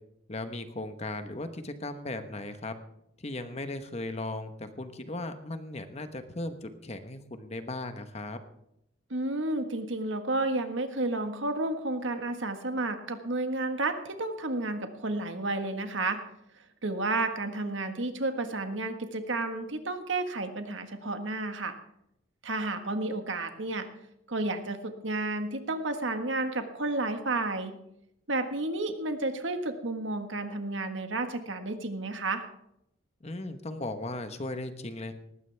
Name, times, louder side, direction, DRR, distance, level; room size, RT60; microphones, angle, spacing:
voice 1, 0.3-2.7 3.2-8.4 33.2-35.1, left 2 dB, 35° left, 8 dB, 1.2 m, -37 dB
voice 2, 9.1-16.2 16.8-21.7 22.4-23.9 24.3-27.7 28.3-32.4, right 2 dB, 75° right, 7 dB, 1.6 m, -31 dB
19.5 x 15.0 x 3.5 m, 0.80 s
head